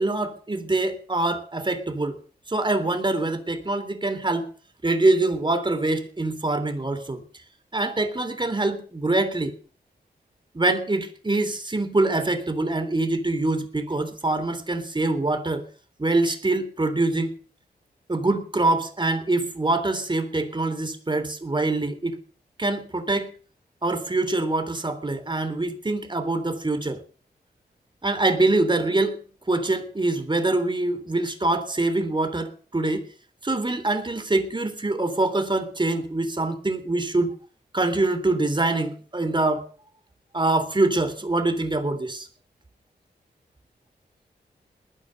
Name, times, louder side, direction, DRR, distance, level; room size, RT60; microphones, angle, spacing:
voice 1, 0.0-2.2 2.5-4.5 4.8-7.2 7.7-9.5 10.5-15.6 16.0-17.3 18.1-22.2 22.6-23.3 23.8-27.0 28.0-29.2 29.5-33.1 33.4-37.3 37.7-39.6 40.3-42.3, right 2 dB, 25° right, 10 dB, 3.5 m, -24 dB
20.5 x 10.0 x 6.7 m, 0.42 s
cardioid pair, 60°, 17 cm